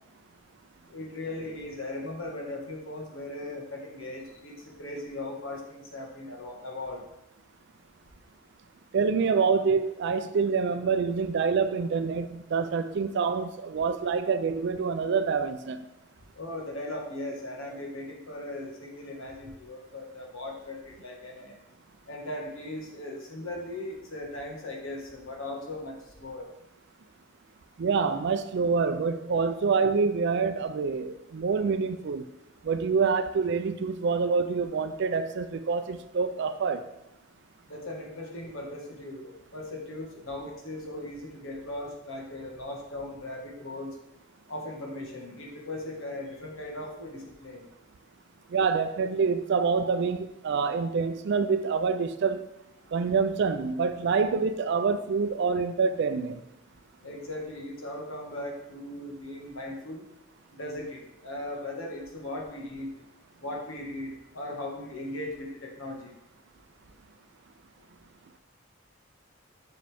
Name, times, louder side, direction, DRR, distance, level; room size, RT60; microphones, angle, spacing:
voice 1, 0.9-7.0 16.3-21.5 22.1-26.5 37.7-43.9 44.5-47.6 57.0-60.0 60.5-62.9 63.4-66.1, left 1 dB, 90° left, 0 dB, 1.6 m, -38 dB
voice 2, 8.9-15.9 27.8-32.3 32.6-36.8 48.5-52.4 52.9-56.4, right 5 dB, 60° right, 8 dB, 0.4 m, -26 dB
7.5 x 5.7 x 3.4 m, 0.92 s
head